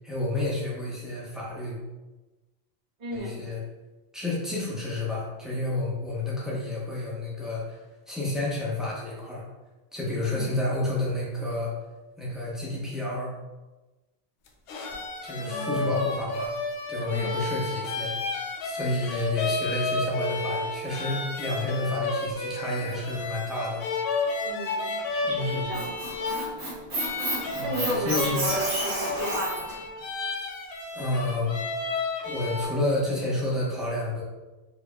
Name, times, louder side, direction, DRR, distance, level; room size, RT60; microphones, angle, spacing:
voice 1, 0.0-1.8 3.1-3.6 4.1-9.5 9.9-11.7 12.2-13.3 15.2-16.6 16.9-18.1 18.6-23.8 25.3-25.7 27.5-28.4 30.9-31.6 32.2-34.2, left 2 dB, ahead, -6 dB, 0.7 m, -30 dB
voice 2, 3.0-3.4 10.3-10.5 15.3-15.9 17.1-17.3 24.4-26.3 27.6-29.7, right 1 dB, 40° right, -4 dB, 0.8 m, -34 dB
sound 1, 14.5-32.6, left 3 dB, 70° left, 0.7 m, -32 dB
Squeak, 25.5-29.7, right 1 dB, 80° right, 1.6 m, -31 dB
4.4 x 2.7 x 2.3 m, 1.1 s
omnidirectional pair, 1.1 m